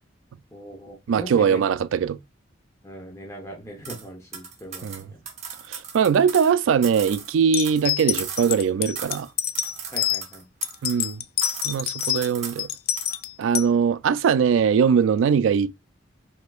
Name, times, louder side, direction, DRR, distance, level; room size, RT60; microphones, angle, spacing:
voice 1, 0.5-1.6 2.8-5.2 9.9-10.5, right 1 dB, 15° left, 0.9 m, -39 dB
voice 2, 1.1-2.2 4.8-5.1 5.7-9.3 10.8-11.2 11.6-12.7 13.4-15.8, right 7 dB, 80° right, 0.3 m, -21 dB
sound 1, 3.8-4.0 4.3-6.5 6.8-8.7 9.0-9.3 9.5-11.1 11.4-12.7 13.0-13.2, right 7 dB, 35° right, 0.9 m, -37 dB
sound 2, 7.5-10.2 10.6-12.3 12.6-13.7, left 12 dB, 55° left, 0.4 m, -26 dB
4.9 x 3.7 x 2.4 m
head